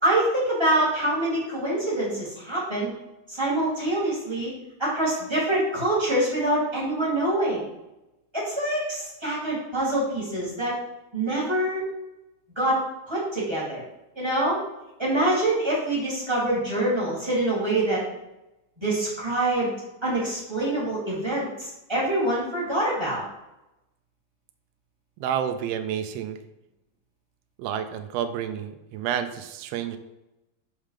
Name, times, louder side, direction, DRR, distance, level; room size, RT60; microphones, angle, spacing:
voice 1, 0.0-2.9 3.3-4.5 4.8-7.6 8.3-10.7 11.1-11.8 12.6-12.8 13.1-13.8 14.2-14.6 15.0-18.0 18.8-19.7 20.0-23.2, right 1 dB, 10° right, -7 dB, 1.7 m, -25 dB
voice 2, 25.2-26.4 27.6-30.0, right 9 dB, 85° right, 8 dB, 1.4 m, -29 dB
6.4 x 3.7 x 4.9 m, 0.96 s
omnidirectional pair, 3.6 m